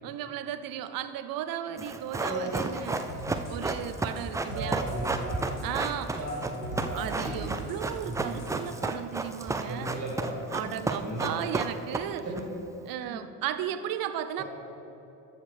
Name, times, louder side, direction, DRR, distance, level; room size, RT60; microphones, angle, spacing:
voice 1, 0.0-3.1 3.5-4.9 5.6-6.2 6.9-10.0 10.5-12.3 12.9-14.4, right 11 dB, 50° right, 11 dB, 0.6 m, -35 dB
Run, 1.8-12.4 12.7-12.8, right 3 dB, 10° right, 0.3 m, -32 dB
voice 2, 2.2-2.6 4.5-5.4 6.0-7.4 8.0-8.4 9.6-11.4 12.2-12.4 14.4-14.5, right 1 dB, 35° right, -3 dB, 2.1 m, -36 dB
sound 1, 3.1-8.7, right 1 dB, 90° left, 1.1 m, -41 dB
13.5 x 6.5 x 3.4 m, 2.9 s
figure-of-eight pair, 50°, 45 cm